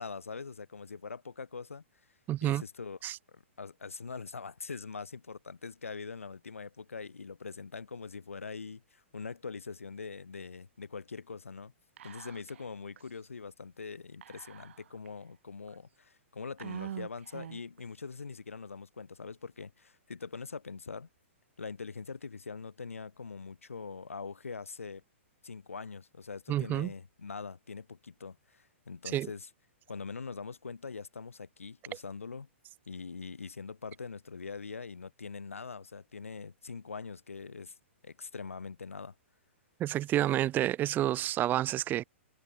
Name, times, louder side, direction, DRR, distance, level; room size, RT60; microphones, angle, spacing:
voice 1, 0.0-1.8 2.4-3.0 3.3-11.7 12.0-21.1 21.6-25.0 25.4-29.5 29.9-32.5 32.9-37.7 38.0-39.1, left 5 dB, 90° left, 7.7 m, -43 dB
voice 2, 2.3-2.6 3.0-3.2 26.5-26.9 29.1-29.3 39.8-42.0, right 13 dB, 25° right, 2.2 m, -29 dB
Whispering, 12.0-12.7 13.0-13.1 14.2-15.1 15.7-15.8 16.6-17.8, right 10 dB, 65° right, 4.2 m, -44 dB
hypercardioid pair, 125°, 7 cm